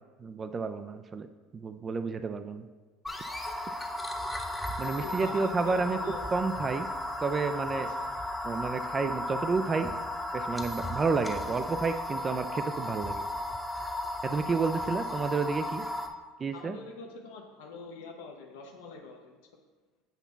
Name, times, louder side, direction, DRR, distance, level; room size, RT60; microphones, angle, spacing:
voice 1, 0.2-1.3 1.5-2.6 4.8-6.0 6.3-6.9 7.2-7.9 8.4-9.9 10.3-13.2 14.2-15.8 16.4-16.8, right 4 dB, 30° right, 10 dB, 0.4 m, -30 dB
sound 1, 3.0-16.1, left 1 dB, 5° left, 0.8 m, -35 dB
voice 2, 4.9-6.3 7.8-8.1 14.6-14.8 16.5-19.4, left 4 dB, 70° left, 2 dB, 0.6 m, -45 dB
8.0 x 2.9 x 5.7 m, 1.3 s
hypercardioid pair, 70°, 0 cm